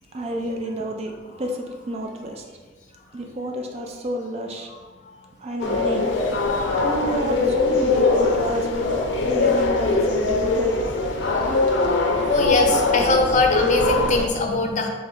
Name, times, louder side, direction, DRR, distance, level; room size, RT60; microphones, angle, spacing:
voice 1, 0.1-1.1 1.4-2.4 3.1-4.7 5.4-6.1 6.8-10.9, right 1 dB, 35° right, 1 dB, 0.4 m, -30 dB
sound 1, 5.6-14.3, left 3 dB, 85° left, 0.5 m, -21 dB
voice 2, 12.3-14.9, left 2 dB, 45° left, 2 dB, 0.5 m, -21 dB
3.9 x 2.9 x 3.9 m, 1.4 s
head